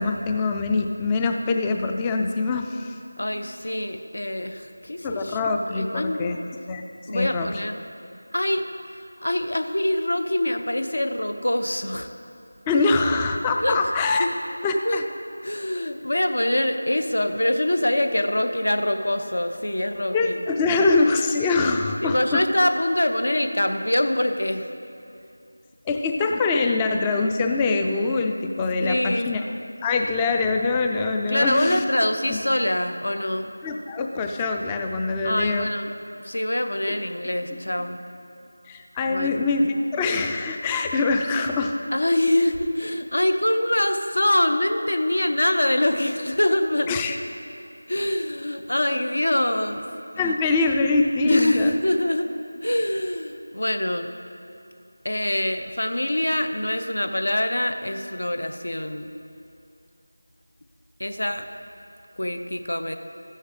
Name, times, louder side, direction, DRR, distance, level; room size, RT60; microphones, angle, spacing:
voice 1, 0.0-2.9 5.0-6.4 6.7-6.9 7.1-7.5 12.7-14.3 14.6-15.0 20.1-22.4 25.9-29.4 29.8-31.8 32.3-32.4 33.6-35.7 36.9-37.0 38.7-41.8 46.9-47.2 50.2-51.7, left 3 dB, 10° left, 4 dB, 0.3 m, -24 dB
voice 2, 3.2-5.4 5.7-6.2 7.1-7.8 8.3-8.7 9.2-12.1 13.6-13.9 14.2-14.3 14.8-15.0 15.4-20.4 22.0-24.7 28.8-29.3 31.3-33.5 35.2-35.9 36.2-38.0 39.0-39.4 41.9-47.2 47.9-49.8 50.2-50.3 51.2-52.3 52.6-54.1 55.0-59.1 61.0-61.5 62.2-63.0, left 1 dB, 65° left, 7 dB, 0.7 m, -24 dB
14.0 x 9.9 x 3.2 m, 2.6 s
figure-of-eight pair, 170°, 0 cm